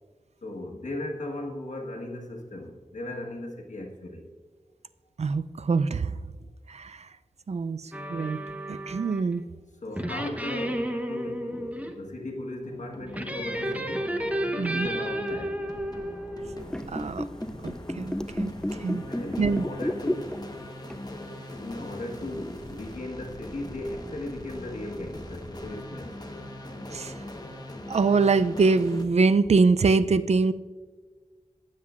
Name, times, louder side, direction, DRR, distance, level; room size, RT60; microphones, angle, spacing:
voice 1, 0.4-4.3 9.8-14.1 14.7-15.6 19.1-20.4 21.0-26.2, left 1 dB, 75° left, 1 dB, 1.3 m, -37 dB
voice 2, 5.2-6.2 6.7-7.1 7.5-8.4 8.7-9.5 14.6-14.9 16.9-17.3 17.6-19.1 19.4-19.6 26.9-27.2 27.9-30.5, right 4 dB, 60° right, 13 dB, 0.4 m, -24 dB
sound 1, 7.9-9.3 10.0-11.9 13.1-16.6, equal, 10° right, 0.9 m, -32 dB
sound 2, 12.6-29.0, left 1 dB, 30° left, 1.1 m, -41 dB
sound 3, 16.6-20.6 20.9-21.1 22.0-22.1, left 1 dB, 5° left, 0.4 m, -31 dB
15.5 x 7.5 x 2.4 m, 1.5 s
wide cardioid pair, 60°, 13 cm